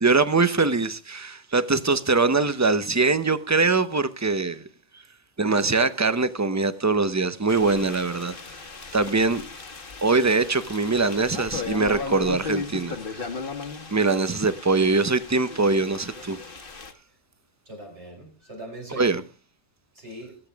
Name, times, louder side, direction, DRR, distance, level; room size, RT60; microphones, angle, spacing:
voice 1, 0.0-4.7 5.4-8.3 8.9-9.4 10.0-13.0 13.9-16.4 19.0-19.2, right 3 dB, 15° right, 0.7 m, -22 dB
sound 1, 7.5-16.9, left 4 dB, 50° left, 1.6 m, -36 dB
voice 2, 17.7-19.2 20.0-20.4, right 1 dB, 70° right, 5.7 m, -40 dB
25.5 x 8.5 x 3.5 m
omnidirectional pair, 1.2 m